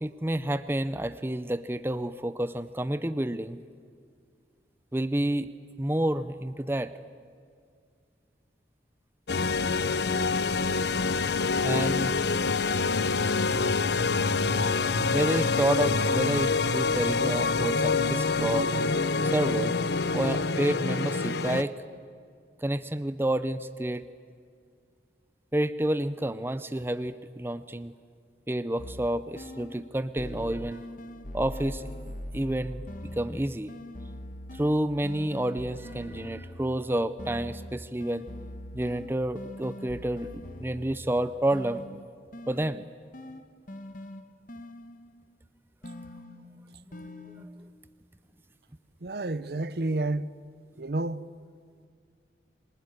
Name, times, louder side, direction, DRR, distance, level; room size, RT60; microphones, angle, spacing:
voice 1, 0.0-3.6 4.9-5.5 5.8-6.9 11.6-12.1 15.1-18.7 19.2-19.7 20.1-21.8 22.6-24.1 25.5-27.9 28.5-30.8 31.3-31.8 32.3-32.8 33.1-33.7 34.5-38.3 38.7-41.8 42.5-42.8, right 1 dB, 15° right, 0.6 m, -29 dB
sound 1, 9.3-21.6, left 4 dB, 70° left, 0.8 m, -26 dB
sound 2, 28.8-29.9 30.2-36.8 37.2-41.2 41.5-45.2 45.8-47.5, left 1 dB, 45° left, 1.2 m, -42 dB
voice 2, 49.0-50.3 50.8-51.2, right 2 dB, 65° right, 0.8 m, -30 dB
26.5 x 19.5 x 9.8 m
head